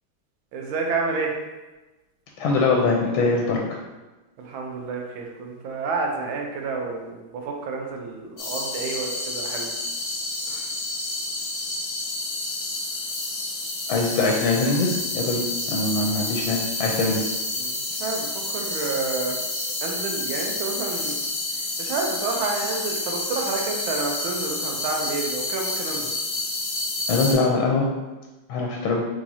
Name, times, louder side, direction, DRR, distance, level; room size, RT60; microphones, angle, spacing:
voice 1, 0.5-1.3 4.4-9.7 10.5-10.7 17.6-19.4 19.8-21.2 21.8-26.1, right 4 dB, 80° right, 0 dB, 1.5 m, -29 dB
voice 2, 2.4-3.6 13.9-17.2 27.1-27.9 28.5-29.0, left 3 dB, 90° left, -1 dB, 1.4 m, -22 dB
sound 1, 8.4-27.3, left 2 dB, 55° left, 1.2 m, -29 dB
4.8 x 3.6 x 2.7 m, 1.1 s
omnidirectional pair, 2.2 m